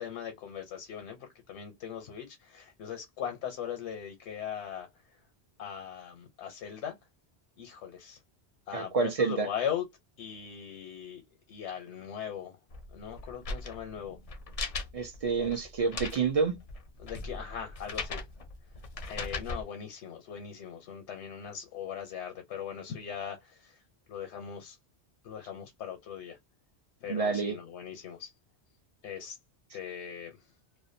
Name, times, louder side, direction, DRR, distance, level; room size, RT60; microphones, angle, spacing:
voice 1, 0.0-4.9 5.6-6.9 7.6-8.2 8.7-9.8 10.2-11.2 11.5-12.6 12.9-14.2 15.4-15.6 17.0-18.2 19.1-23.8 24.1-24.8 25.2-26.4 27.0-28.3 29.0-29.4 29.7-30.4, left 8 dB, 90° left, 0.9 m, -39 dB
voice 2, 8.7-9.5 14.9-16.6 27.1-27.6, right 5 dB, 50° right, 0.4 m, -28 dB
sound 1, 12.7-19.6, left 3 dB, 50° left, 0.4 m, -39 dB
2.5 x 2.1 x 2.5 m
omnidirectional pair, 1.1 m